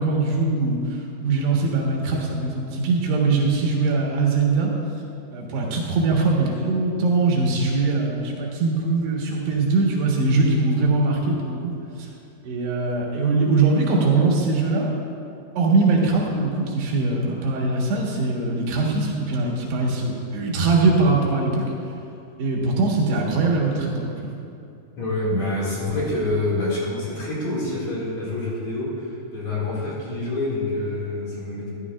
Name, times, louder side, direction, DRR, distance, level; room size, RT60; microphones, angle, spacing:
voice 1, 0.0-4.7 5.3-11.7 12.0-12.1 12.4-14.9 15.6-21.6 22.4-24.3, right 3 dB, 90° right, -2 dB, 3.5 m, -21 dB
voice 2, 25.0-31.7, left 2 dB, 50° left, -7 dB, 3.1 m, -26 dB
14.0 x 11.0 x 2.4 m, 2.7 s
omnidirectional pair, 4.6 m